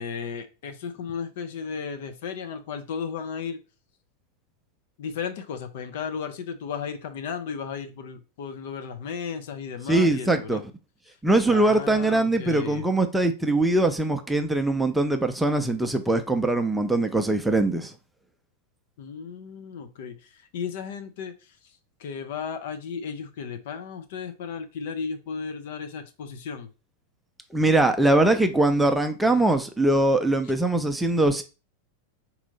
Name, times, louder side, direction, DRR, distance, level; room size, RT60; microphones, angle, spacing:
voice 1, 0.0-3.6 5.0-10.6 11.5-12.9 19.0-26.7, left 6 dB, 55° left, 0.6 m, -35 dB
voice 2, 9.9-10.6 11.2-17.9 27.5-31.4, right 2 dB, 5° right, 0.5 m, -22 dB
4.2 x 2.7 x 4.0 m
figure-of-eight pair, 90°, 0 cm